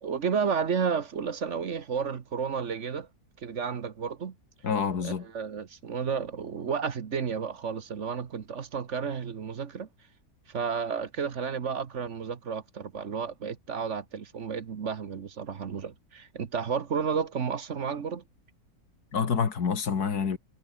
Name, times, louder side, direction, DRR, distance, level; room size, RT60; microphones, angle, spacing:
voice 1, 0.0-3.1 3.4-4.3 5.0-9.9 10.5-18.2, right 6 dB, 50° right, 1.5 m, -32 dB
voice 2, 4.6-5.3 19.1-20.4, left 6 dB, 85° left, 2.4 m, -27 dB
omnidirectional pair, 1.6 m